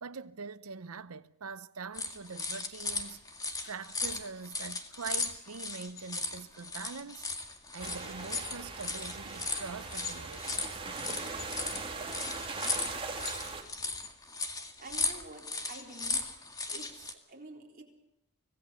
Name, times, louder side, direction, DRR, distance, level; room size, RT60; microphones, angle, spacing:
voice 1, 0.0-10.8, right 5 dB, 85° right, 0.8 m, -44 dB
sound 1, 1.9-17.1, left 3 dB, 15° left, 2.0 m, -37 dB
sound 2, 7.8-13.6, right 4 dB, 25° right, 2.8 m, -40 dB
voice 2, 14.8-16.2 16.7-17.8, right 2 dB, 45° right, 4.2 m, -48 dB
25.5 x 18.0 x 7.1 m
head